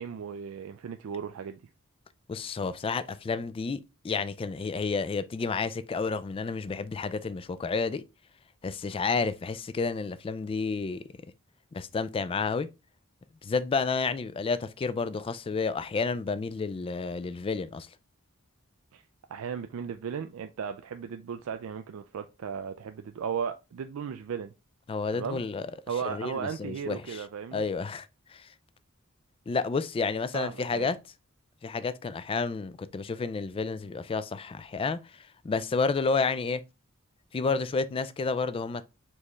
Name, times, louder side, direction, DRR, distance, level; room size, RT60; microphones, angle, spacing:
voice 1, 0.0-1.6 18.9-19.0 19.3-24.5 25.1-25.4 25.9-27.6 30.3-30.9, right 7 dB, 70° right, 0.4 m, -36 dB
voice 2, 2.3-8.0 8.6-11.1 11.7-12.7 13.4-17.9 24.9-25.7 26.0-27.2 27.5-28.5 29.5-31.0 31.6-36.6 37.3-38.9, left 4 dB, 25° left, 0.3 m, -30 dB
4.4 x 3.0 x 3.3 m
head